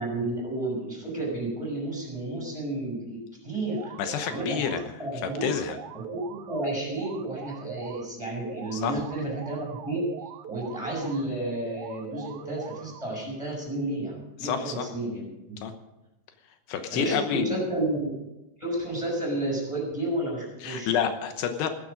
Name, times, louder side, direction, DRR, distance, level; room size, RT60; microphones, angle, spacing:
voice 1, 0.0-3.9 4.3-5.5 5.9-10.1 10.5-15.6 16.9-18.1 18.6-21.0, right 1 dB, 5° right, -1 dB, 5.9 m, -31 dB
sound 1, 3.6-4.8 5.2-8.0 8.4-11.2 11.6-13.2, right 7 dB, 90° right, 1.7 m, -42 dB
voice 2, 4.0-4.8 5.4-5.8 8.7-8.9 14.4-14.9 15.6-15.7 16.7-17.7 20.6-21.7, left 8 dB, 80° left, 7 dB, 3.1 m, -28 dB
16.0 x 13.5 x 5.2 m, 0.96 s
omnidirectional pair, 4.8 m